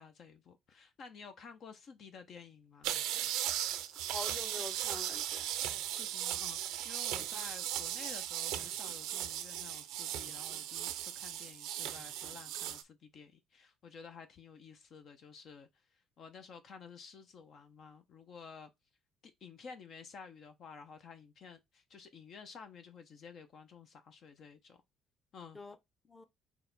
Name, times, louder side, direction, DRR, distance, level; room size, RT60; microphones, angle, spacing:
voice 1, 0.0-3.0 5.8-18.7 19.2-24.8 25.3-25.6, left 5 dB, 55° left, 0.8 m, -52 dB
sound 1, 2.8-12.8, right 12 dB, 80° right, 0.5 m, -37 dB
voice 2, 3.9-5.5 7.1-7.3 25.5-25.8 26.1-26.2, left 2 dB, 20° left, 0.9 m, -46 dB
3.9 x 2.9 x 4.0 m
supercardioid pair, 80°, 0 cm